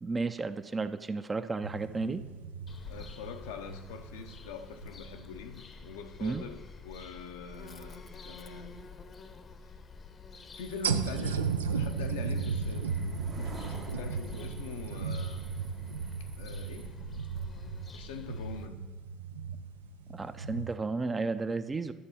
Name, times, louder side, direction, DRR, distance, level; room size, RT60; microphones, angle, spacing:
voice 1, 0.0-2.2 6.2-6.4 20.1-21.9, right 3 dB, 25° right, 0.5 m, -33 dB
sound 1, 1.6-5.4 5.8-5.9 10.8-20.7, right 5 dB, 90° right, 0.4 m, -36 dB
Bird vocalization bird call bird song, 2.7-18.7, left 4 dB, 40° left, 0.7 m, -48 dB
voice 2, 2.9-8.8 10.6-13.0 13.4-15.5 16.2-17.0 17.9-18.8, left 5 dB, 75° left, 0.6 m, -44 dB
sound 2, 10.5-16.9, right 4 dB, 55° right, 1.2 m, -50 dB
11.0 x 6.7 x 4.3 m
hypercardioid pair, 60°, 0 cm